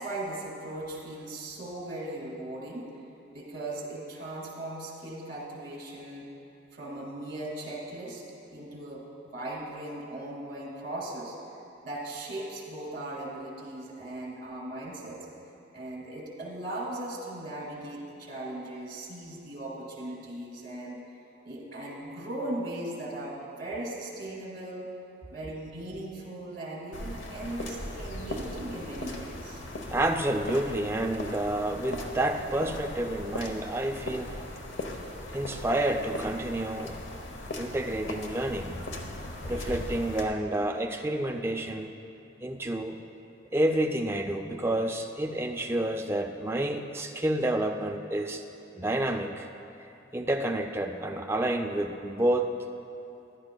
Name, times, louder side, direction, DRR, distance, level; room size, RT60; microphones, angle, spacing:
voice 1, 0.0-2.9 3.3-6.3 6.7-8.2 8.5-11.4 11.8-15.3 15.7-21.0 21.4-24.9 25.3-29.6, right 1 dB, 50° right, -2 dB, 2.1 m, -38 dB
sound 1, 26.9-40.2, left 1 dB, 80° left, 0.9 m, -39 dB
voice 2, 29.9-34.4 35.3-37.0 37.6-38.8 39.4-41.9 42.4-43.0 43.5-48.4 48.8-49.5 50.1-52.5, right 1 dB, 15° right, 3 dB, 0.4 m, -29 dB
15.0 x 10.5 x 2.3 m, 2.7 s
head